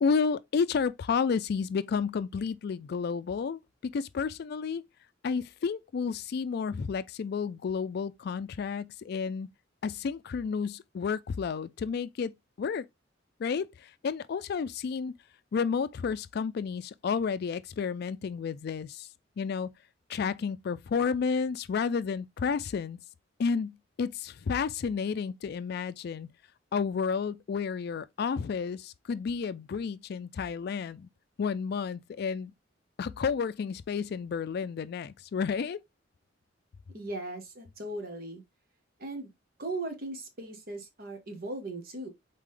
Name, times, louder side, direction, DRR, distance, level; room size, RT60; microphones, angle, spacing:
voice 1, 0.0-4.8 5.2-9.5 9.8-12.3 12.6-12.8 13.4-13.7 14.0-15.1 15.5-19.1 19.4-19.7 20.1-23.0 23.4-23.7 24.0-26.3 26.7-31.1 31.4-32.5 33.0-35.8, left 5 dB, 55° left, 0.3 m, -31 dB
voice 2, 36.9-38.4 39.0-39.3 39.6-42.1, right 2 dB, 55° right, 1.2 m, -38 dB
4.1 x 3.8 x 3.3 m
head